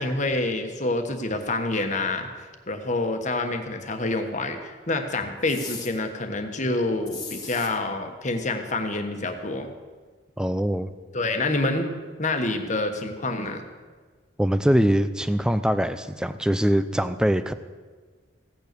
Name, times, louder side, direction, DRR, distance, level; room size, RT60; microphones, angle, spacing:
voice 1, 0.0-2.3 2.7-9.7 11.1-11.9 12.2-13.6, left 2 dB, 40° left, 6 dB, 1.3 m, -27 dB
sound 1, 5.4-5.9 7.0-7.7, left 4 dB, 20° left, 1.9 m, -37 dB
voice 2, 10.4-10.9 14.4-17.5, equal, 5° right, 11 dB, 0.5 m, -23 dB
16.0 x 9.4 x 6.8 m, 1.4 s
head